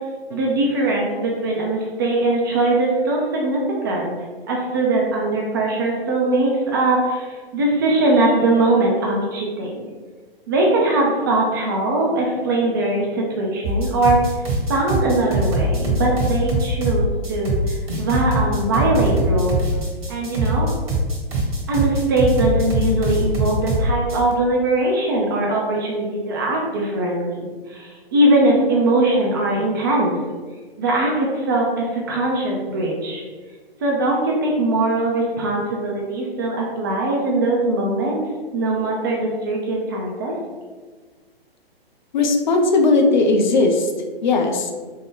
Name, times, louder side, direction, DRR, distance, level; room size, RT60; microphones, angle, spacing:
voice 1, 0.3-4.1 4.5-9.8 10.5-14.2 14.7-19.6 20.1-20.7 21.7-30.1 30.8-33.2 33.8-38.2 38.5-40.3, right 2 dB, 20° right, -2 dB, 0.4 m, -21 dB
sound 1, 13.6-24.3, right 1 dB, 55° right, 1.3 m, -22 dB
voice 2, 42.1-43.9 44.2-44.7, left 3 dB, 50° left, 3 dB, 0.5 m, -17 dB
4.2 x 2.1 x 3.6 m, 1.4 s
figure-of-eight pair, 120°, 30 cm